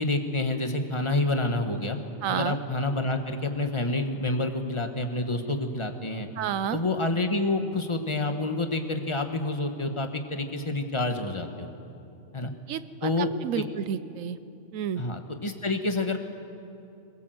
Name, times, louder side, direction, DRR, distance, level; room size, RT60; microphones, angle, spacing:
voice 1, 0.0-2.0 2.3-6.3 6.7-11.7 12.3-12.5 13.0-13.3 13.6-13.7 15.0-16.2, left 2 dB, 25° left, 6 dB, 1.4 m, -28 dB
voice 2, 2.2-2.6 6.4-6.8 12.7-14.4 14.7-15.0, right 9 dB, 90° right, 14 dB, 1.1 m, -30 dB
21.5 x 21.0 x 7.9 m, 2.7 s
omnidirectional pair, 1.3 m